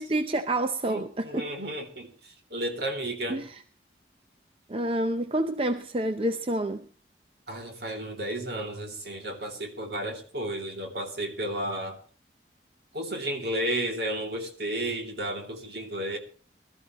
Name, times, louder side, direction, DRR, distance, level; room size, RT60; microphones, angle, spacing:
voice 1, 0.0-1.5 3.3-3.5 4.7-6.8, right 1 dB, 30° right, 0.6 m, -28 dB
voice 2, 0.9-3.4 7.5-12.0 12.9-16.2, right 1 dB, 60° right, 2.7 m, -33 dB
21.0 x 13.5 x 3.0 m
head